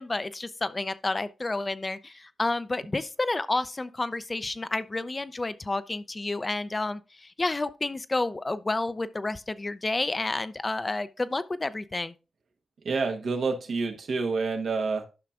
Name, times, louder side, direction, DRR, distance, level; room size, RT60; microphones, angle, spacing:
voice 1, 0.0-7.0 7.4-12.1, left 2 dB, 30° left, 0.5 m, -30 dB
voice 2, 12.8-15.1, right 4 dB, 75° right, 1.2 m, -28 dB
11.0 x 5.7 x 2.4 m
cardioid pair, 75°, 0 cm